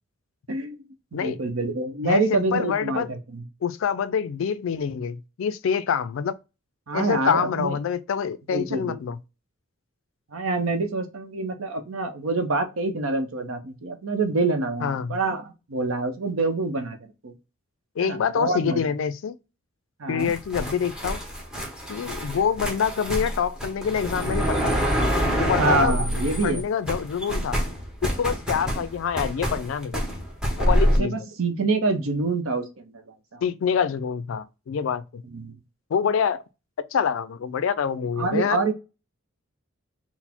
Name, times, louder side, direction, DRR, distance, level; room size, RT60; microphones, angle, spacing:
voice 1, 1.1-3.4 6.9-7.8 8.5-9.0 10.3-17.3 18.0-18.8 20.0-20.3 25.5-26.7 31.0-33.4 35.2-35.6 38.2-38.7, right 3 dB, 75° right, 0.7 m, -26 dB
voice 2, 2.0-3.1 3.6-6.3 6.9-9.2 14.8-15.2 18.0-19.4 20.1-21.2 21.9-24.7 25.3-26.0 26.4-27.6 28.0-30.0 30.6-31.3 33.4-35.2 35.9-36.4 36.9-38.6, left 7 dB, 65° left, 0.3 m, -26 dB
sound 1, 20.2-26.6 26.9-31.0, equal, 5° right, 0.8 m, -26 dB
4.1 x 2.0 x 4.2 m
head